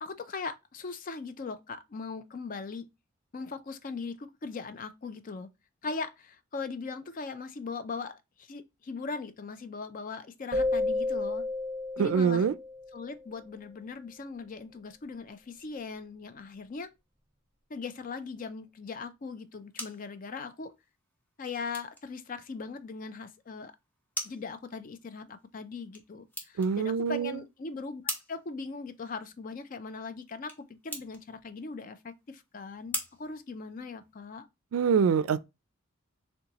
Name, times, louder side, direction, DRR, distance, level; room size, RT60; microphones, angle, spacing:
voice 1, 0.0-2.9 3.3-5.5 5.8-11.4 12.0-12.5 12.9-16.9 17.7-20.7 21.4-23.7 24.2-28.0 28.3-34.5, left 4 dB, 40° left, 0.4 m, -39 dB
sound 1, 10.5-13.2, left 2 dB, 20° right, 0.9 m, -31 dB
voice 2, 12.0-12.5 26.6-27.4 34.7-35.4, right 6 dB, 80° right, 0.3 m, -25 dB
sound 2, 19.3-34.3, equal, 10° left, 0.8 m, -45 dB
6.5 x 2.3 x 2.9 m
head